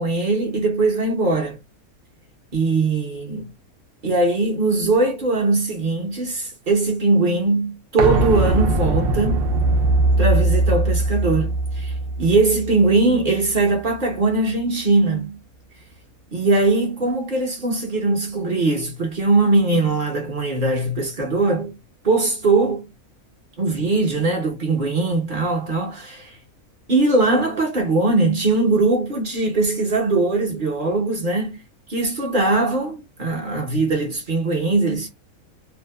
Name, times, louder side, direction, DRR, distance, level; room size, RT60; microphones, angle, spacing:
voice 1, 0.0-1.6 2.5-3.5 4.0-9.5 10.2-11.9 12.2-15.4 16.3-21.8 22.0-22.9 23.6-26.4 26.9-31.6 31.9-35.1, right 3 dB, 45° right, 0.9 m, -20 dB
sound 1, 8.0-13.6 13.9-14.0, right 2 dB, 80° right, 0.5 m, -20 dB
2.7 x 2.1 x 2.2 m
omnidirectional pair, 1.5 m